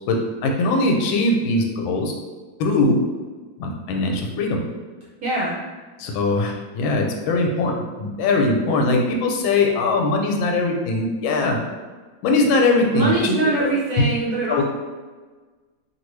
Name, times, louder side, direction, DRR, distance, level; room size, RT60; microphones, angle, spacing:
voice 1, 0.1-2.1 2.6-3.0 3.6-4.6 6.0-11.6 12.2-13.7 14.0-14.1 14.5-14.6, left 2 dB, 85° left, 2 dB, 1.3 m, -21 dB
voice 2, 5.2-5.6 12.9-14.6, right 2 dB, 65° right, -6 dB, 1.0 m, -22 dB
3.0 x 2.6 x 3.1 m, 1.3 s
omnidirectional pair, 2.1 m